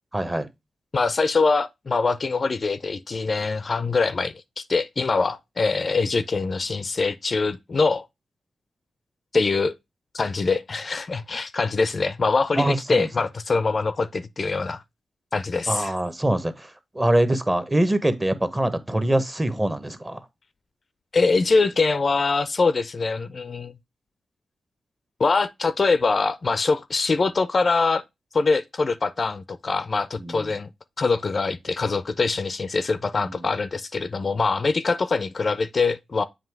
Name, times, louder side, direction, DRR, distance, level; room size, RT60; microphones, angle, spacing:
voice 1, 0.1-0.5 12.6-13.1 15.7-20.2 30.2-30.5 33.3-33.5, right 1 dB, 15° right, 0.9 m, -24 dB
voice 2, 0.9-8.1 9.3-9.7 10.1-14.8 15.3-15.9 21.1-23.7 25.2-28.0 28.3-30.7 31.0-36.2, left 4 dB, 45° left, 0.4 m, -23 dB
7.5 x 2.8 x 4.5 m
cardioid pair, 75°, 0 cm